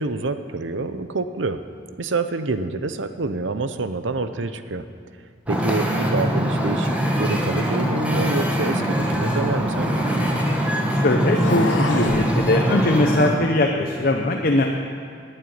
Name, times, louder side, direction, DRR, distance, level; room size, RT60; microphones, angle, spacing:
voice 1, 0.0-1.6 2.0-4.8 5.5-6.9 7.2-10.1, right 3 dB, 80° right, 10 dB, 0.7 m, -27 dB
Wind / Ocean, 5.5-13.3, equal, 5° right, 1.5 m, -22 dB
sound 1, 9.5-10.5 11.2-12.3, left 3 dB, 90° left, 1.2 m, -31 dB
voice 2, 10.9-14.6, left 2 dB, 50° left, 2 dB, 0.9 m, -21 dB
11.0 x 9.0 x 9.4 m, 2.2 s
head